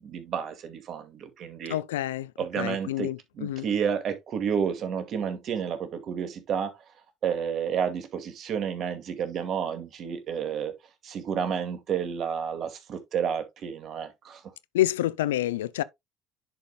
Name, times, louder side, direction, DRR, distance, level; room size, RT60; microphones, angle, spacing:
voice 1, 0.0-1.8 2.4-6.8 7.2-10.7 11.0-14.4, right 7 dB, 55° right, 2.2 m, -31 dB
voice 2, 1.7-2.3 2.6-3.6 14.7-15.8, left 14 dB, 85° left, 0.4 m, -28 dB
10.5 x 5.2 x 2.3 m
hypercardioid pair, 60°, 0 cm